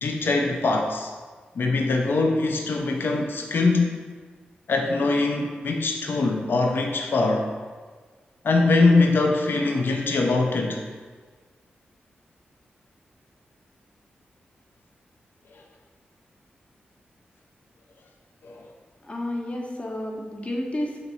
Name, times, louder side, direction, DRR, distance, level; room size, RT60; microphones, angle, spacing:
voice 1, 0.0-1.1 1.6-3.9 4.7-7.5 8.4-10.8 18.4-18.6, left 3 dB, 65° left, 2 dB, 0.4 m, -22 dB
voice 2, 19.0-21.0, left 1 dB, 30° left, 0 dB, 0.7 m, -31 dB
2.9 x 2.7 x 4.1 m, 1.5 s
cardioid pair, 45°, 4 cm